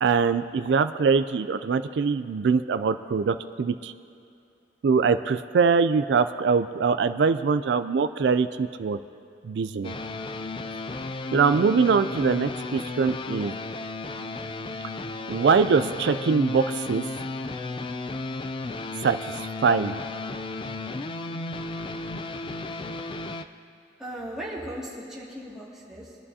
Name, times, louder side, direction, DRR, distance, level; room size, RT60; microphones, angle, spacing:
voice 1, 0.0-3.9 4.8-9.0 9.4-9.9 11.3-13.5 15.3-17.0 19.0-19.9, right 5 dB, 75° right, 10 dB, 0.3 m, -23 dB
sound 1, 9.8-23.4, left 2 dB, 30° left, 0.3 m, -34 dB
sound 2, 13.9-18.4, left 2 dB, 75° left, 2.1 m, -52 dB
voice 2, 24.0-26.2, right 1 dB, 5° right, -7 dB, 2.3 m, -37 dB
23.5 x 11.0 x 2.8 m, 2.5 s
head